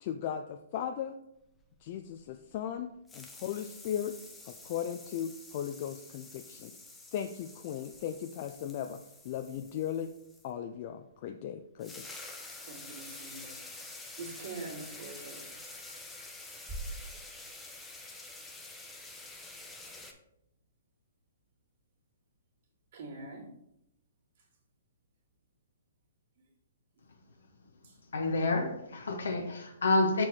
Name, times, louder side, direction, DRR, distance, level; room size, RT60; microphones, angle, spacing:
voice 1, 0.0-1.2 1.8-4.2 4.5-6.7 7.1-9.0 9.2-10.1 10.4-12.1, left 9 dB, 45° left, 0.4 m, -37 dB
sound 1, 1.6-2.8 3.1-10.5 11.5-11.6 11.8-20.1, left 2 dB, 10° left, 0.8 m, -48 dB
voice 2, 12.7-15.4 22.9-23.5 27.8-27.9, right 3 dB, 60° right, 2.4 m, -44 dB
sound 2, 16.7-18.8, right 2 dB, 15° right, 1.3 m, -44 dB
voice 3, 28.1-30.3, left 2 dB, 75° left, 1.0 m, -28 dB
6.0 x 4.5 x 4.3 m
hypercardioid pair, 130°, 0 cm